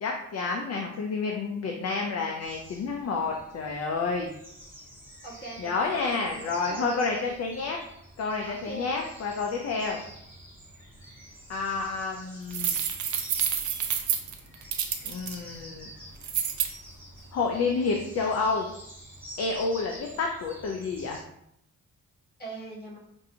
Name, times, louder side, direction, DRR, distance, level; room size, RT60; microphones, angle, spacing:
voice 1, 0.0-4.3 5.6-7.8 8.2-10.0 11.5-12.8 15.0-15.9 17.3-18.7 19.4-21.2, left 4 dB, 55° left, 1 dB, 0.5 m, -29 dB
sound 1, 2.4-21.2, equal, 5° right, 1.5 m, -48 dB
voice 2, 5.2-7.2 8.4-8.9 22.4-23.0, right 2 dB, 30° left, -5 dB, 1.5 m, -40 dB
sound 2, 12.5-15.3 16.2-16.7, right 8 dB, 65° right, 0.5 m, -28 dB
5.4 x 2.6 x 2.7 m, 0.75 s
wide cardioid pair, 140°, 31 cm